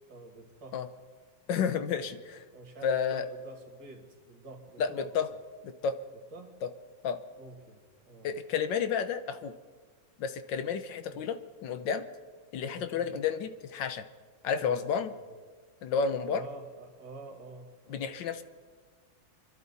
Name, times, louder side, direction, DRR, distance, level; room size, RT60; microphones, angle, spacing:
voice 1, 0.1-0.8 1.9-2.1 2.5-5.1 6.3-6.5 7.4-8.3 11.1-11.2 12.6-13.2 14.6-15.2 16.3-18.1, right 2 dB, 65° right, 2 dB, 3.0 m, -48 dB
voice 2, 1.5-2.4 2.8-3.2 4.8-5.3 5.8-5.9 7.0-7.2 8.2-9.5 10.2-12.0 12.5-14.0 14.4-15.1 15.8-16.4 17.9-18.4, left 6 dB, 70° left, 9 dB, 1.4 m, -31 dB
25.5 x 12.5 x 4.1 m, 1.4 s
omnidirectional pair, 2.2 m